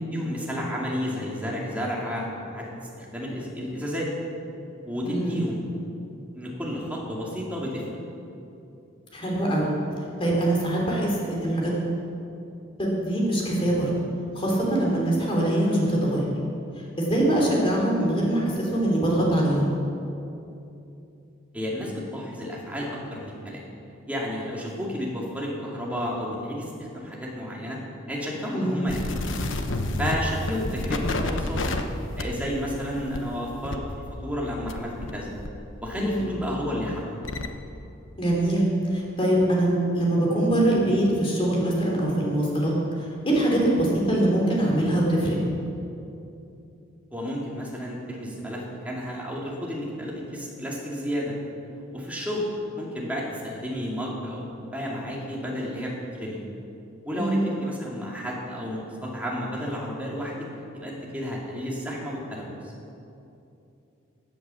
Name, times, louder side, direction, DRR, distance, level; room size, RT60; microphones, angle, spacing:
voice 1, 0.1-2.7 3.0-4.1 4.8-5.6 6.3-7.8 21.5-23.6 24.1-27.8 28.1-29.3 30.0-31.6 32.2-33.8 34.2-35.3 35.8-37.1 47.1-51.3 51.9-52.4 52.8-55.9 56.2-56.4 57.0-60.4 60.7-62.5, equal, 5° right, -4 dB, 2.5 m, -31 dB
voice 2, 5.0-5.4 9.1-9.7 10.2-11.7 12.8-13.9 14.3-16.2 17.0-19.6 28.5-28.8 35.9-36.3 38.2-42.7 43.3-45.4 57.1-57.4, right 1 dB, 25° left, -3 dB, 3.5 m, -23 dB
sound 1, 28.9-35.2 35.4-37.5, left 2 dB, 70° left, 1.0 m, -31 dB
16.5 x 8.8 x 7.0 m, 2.7 s
head